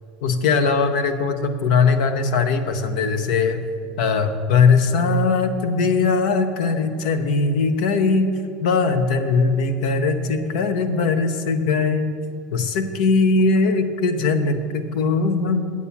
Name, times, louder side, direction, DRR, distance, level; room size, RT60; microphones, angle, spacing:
voice 1, 0.2-3.7 4.0-8.3 8.6-12.2 12.5-15.6, left 4 dB, 75° left, 9 dB, 0.7 m, -20 dB
8.4 x 7.3 x 5.9 m, 2.3 s
supercardioid pair, 110°, 4 cm